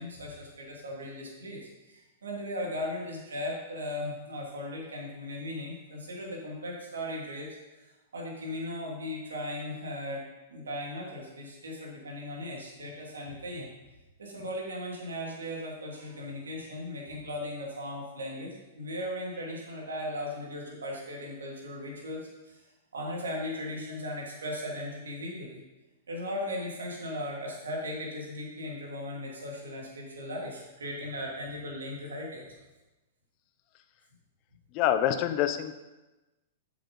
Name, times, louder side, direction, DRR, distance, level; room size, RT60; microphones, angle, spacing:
voice 1, 0.0-1.6 1.9-7.9 8.1-10.2 10.5-13.7 14.2-22.6 22.9-25.6 26.1-32.5, left 1 dB, 90° right, -2 dB, 2.8 m, -37 dB
voice 2, 34.7-35.8, left 11 dB, 45° left, 10 dB, 0.8 m, -26 dB
7.6 x 6.9 x 5.4 m, 1.1 s
hypercardioid pair, 120°, 0 cm